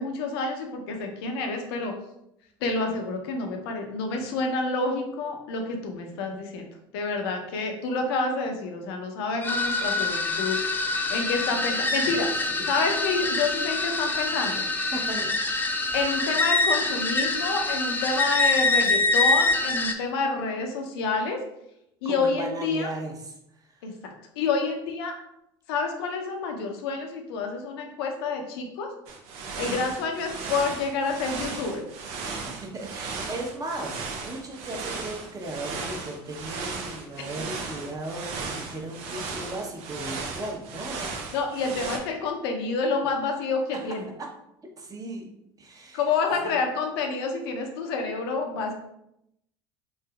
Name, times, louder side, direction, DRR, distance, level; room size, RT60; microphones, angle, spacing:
voice 1, 0.0-1.9 2.6-6.6 6.9-10.6 10.9-12.3 12.7-14.6 15.9-21.4 22.0-22.9 23.8-25.1 25.7-28.9 29.6-31.8 41.3-44.1 45.9-48.7, left 4 dB, 80° left, 3 dB, 0.6 m, -28 dB
sound 1, 9.4-19.9, left 3 dB, 15° left, 0.4 m, -25 dB
voice 2, 14.9-15.3 15.9-16.4 22.0-23.8 29.5-29.9 32.6-41.1 43.7-43.9 44.8-45.3 45.6-46.0 46.4-46.5, right 1 dB, 30° right, 1 dB, 0.7 m, -37 dB
sound 2, 29.1-42.0, right 4 dB, 75° right, 0.5 m, -36 dB
3.2 x 2.7 x 2.3 m, 0.80 s
hypercardioid pair, 75°, 13 cm